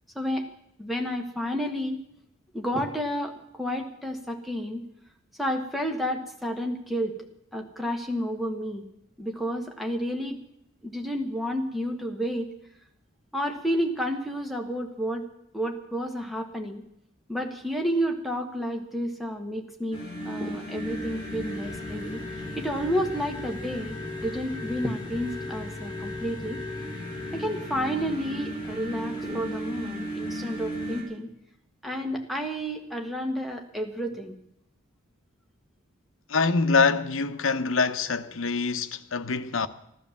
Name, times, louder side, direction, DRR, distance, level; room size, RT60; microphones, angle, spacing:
voice 1, 0.1-0.5 0.8-2.0 2.5-4.8 5.4-7.1 7.5-8.8 9.2-10.4 10.8-12.5 13.3-15.3 15.5-16.8 17.3-22.2 22.5-26.6 27.3-31.3 31.8-34.3, equal, ahead, 1.6 m, -30 dB
sound 1, 19.9-31.0, left 1 dB, 20° left, 4.4 m, -35 dB
voice 2, 36.3-39.7, left 4 dB, 75° left, 0.8 m, -25 dB
15.0 x 12.0 x 7.3 m
head